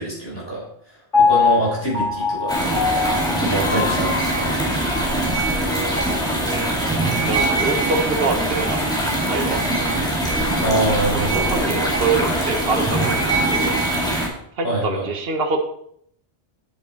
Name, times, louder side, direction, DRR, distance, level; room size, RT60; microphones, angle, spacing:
voice 1, 0.0-3.0 3.3-4.6 10.6-11.6 14.6-15.1, right 1 dB, 20° left, -5 dB, 4.8 m, -25 dB
Piano, 1.1-5.2 5.7-5.8, left 5 dB, 50° left, 3.9 m, -22 dB
sound 1, 2.5-14.3, right 1 dB, 5° left, 2.5 m, -22 dB
voice 2, 7.0-9.6 11.1-13.7 14.6-15.6, right 4 dB, 65° right, 4 dB, 1.4 m, -25 dB
10.0 x 6.8 x 4.4 m, 0.69 s
omnidirectional pair, 1.1 m